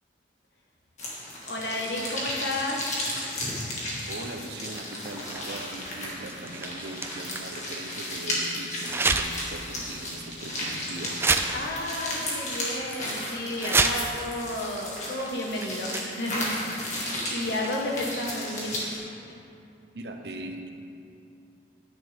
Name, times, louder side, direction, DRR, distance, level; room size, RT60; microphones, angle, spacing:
sound 1, 1.0-19.0, left 1 dB, 40° left, 1.9 m, -34 dB
voice 1, 1.5-2.8 11.5-18.8, left 1 dB, 70° left, -1 dB, 1.4 m, -32 dB
sound 2, 4.1-8.0 8.8-9.5 9.9-10.0 10.7-10.8 11.1-12.2 12.5-13.0 13.4-14.3 15.2-15.3 15.6-16.4 17.4-18.0, right 3 dB, 15° right, 0.3 m, -30 dB
voice 2, 4.1-11.3 19.9-20.7, right 1 dB, 65° right, 5 dB, 0.7 m, -40 dB
10.0 x 9.7 x 3.5 m, 2.6 s
head